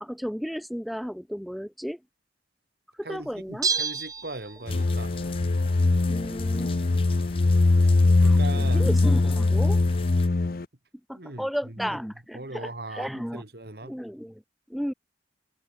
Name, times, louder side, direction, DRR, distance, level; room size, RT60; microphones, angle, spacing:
voice 1, 0.0-2.0 3.0-3.8 6.1-6.8 8.2-9.8 11.1-13.4 13.8-14.4 14.7-14.9, equal, ahead, 0.6 m, -33 dB
voice 2, 3.0-5.1 7.8-8.9 11.1-12.0 12.3-14.0, right 2 dB, 60° right, 2.3 m, -40 dB
Bell, 3.6-5.0 5.3-5.4, right 5 dB, 20° right, 1.6 m, -29 dB
sound 1, 4.7-10.7, left 3 dB, 55° left, 0.6 m, -22 dB
sound 2, 4.7-10.3, left 4 dB, 30° left, 1.0 m, -43 dB
head